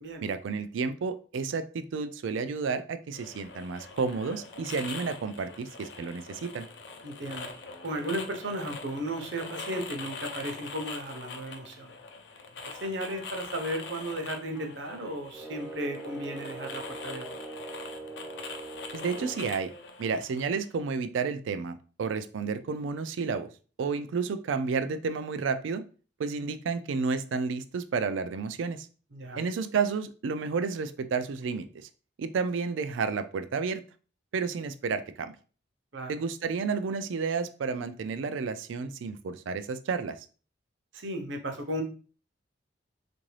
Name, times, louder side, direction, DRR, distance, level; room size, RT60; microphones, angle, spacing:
voice 1, 0.2-6.7 18.9-19.7 20.0-23.5 23.8-25.8 26.2-28.9 29.3-31.9 32.2-33.8 34.3-35.3 36.1-40.2, right 5 dB, 90° right, 11 dB, 0.4 m, -31 dB
sound 1, 3.1-20.7, left 4 dB, 70° left, 0.5 m, -43 dB
voice 2, 7.0-7.5 7.8-11.9 12.6-17.3 29.1-29.4 35.9-36.1 40.9-41.8, right 1 dB, 75° right, 4 dB, 0.7 m, -35 dB
sound 2, 15.3-19.6, right 2 dB, 10° right, 0.4 m, -42 dB
3.6 x 2.6 x 3.1 m, 0.38 s
head